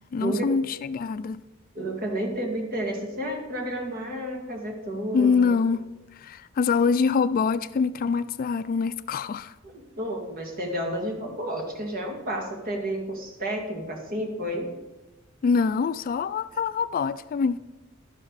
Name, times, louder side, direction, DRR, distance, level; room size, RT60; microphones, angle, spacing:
voice 1, 0.1-1.4 5.1-5.8 6.1-9.5 15.4-17.6, left 5 dB, 45° left, 0.3 m, -24 dB
voice 2, 1.7-5.5 9.6-14.7, right 1 dB, 45° right, 2.2 m, -31 dB
12.0 x 11.0 x 4.1 m
head